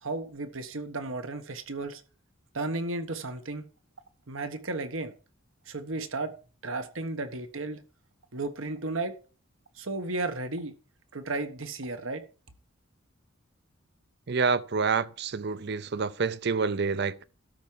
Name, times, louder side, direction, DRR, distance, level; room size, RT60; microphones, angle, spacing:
voice 1, 0.0-2.0 2.5-3.6 4.3-5.1 5.7-6.3 6.6-7.8 8.3-9.1 9.7-10.7 11.1-12.2, right 2 dB, 75° right, 1.3 m, -34 dB
voice 2, 14.3-17.2, right 5 dB, 55° right, 0.6 m, -28 dB
12.5 x 4.7 x 7.3 m
head